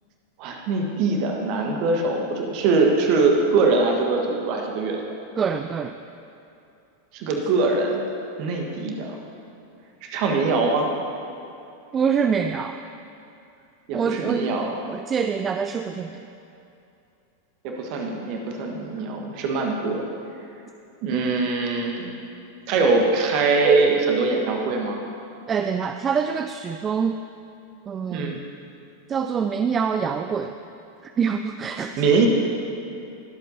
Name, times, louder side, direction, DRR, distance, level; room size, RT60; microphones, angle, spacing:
voice 1, 0.4-5.0 7.1-8.0 8.4-9.2 10.0-10.9 13.9-14.7 17.6-20.0 21.0-22.1 22.7-25.0 28.1-28.3 32.0-32.3, right 3 dB, 45° right, 1 dB, 1.5 m, -22 dB
voice 2, 5.4-6.0 10.5-10.6 11.9-12.8 13.9-16.2 25.5-27.2 27.9-28.4 29.1-30.5 31.0-32.0, right 6 dB, 25° right, 8 dB, 0.3 m, -25 dB
21.5 x 8.1 x 2.8 m, 2.7 s
figure-of-eight pair, 90°, 0 cm